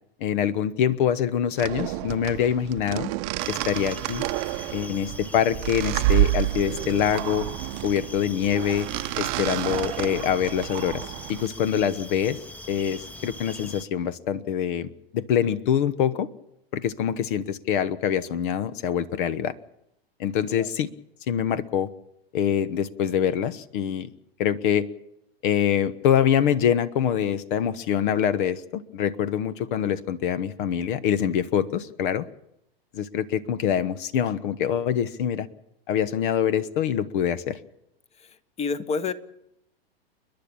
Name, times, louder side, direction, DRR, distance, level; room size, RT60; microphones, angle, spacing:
voice 1, 0.2-3.1 3.5-4.2 4.7-7.5 7.8-8.9 9.2-12.4 12.7-16.3 16.7-19.5 20.2-20.9 21.3-21.9 22.3-24.1 24.4-24.9 25.4-32.3 32.9-35.5 35.9-37.6, left 9 dB, 55° left, 16 dB, 1.1 m, -25 dB
sound 1, 1.6-11.5, right 18 dB, 45° right, 0.8 m, -29 dB
sound 2, 3.4-13.9, left 1 dB, 5° left, 0.9 m, -42 dB
voice 2, 38.6-39.1, left 5 dB, 20° left, 15 dB, 1.2 m, -28 dB
30.0 x 10.5 x 8.6 m, 0.81 s
hypercardioid pair, 110°, 31 cm